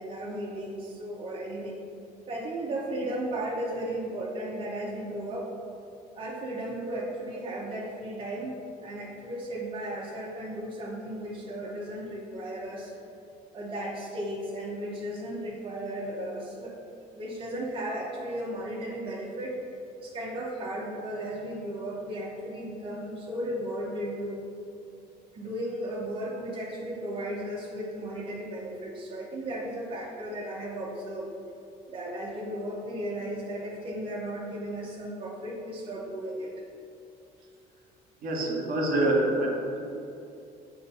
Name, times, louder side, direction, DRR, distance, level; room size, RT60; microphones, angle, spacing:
voice 1, 0.0-1.8 2.3-5.5 6.1-8.6 8.8-12.9 13.5-19.6 20.0-24.4 25.3-31.3 31.9-36.5, right 1 dB, 30° right, -5 dB, 0.9 m, -35 dB
voice 2, 38.2-39.8, right 1 dB, 55° right, -2 dB, 1.4 m, -26 dB
6.8 x 2.6 x 5.4 m, 2.6 s
cardioid pair, 110°, 17 cm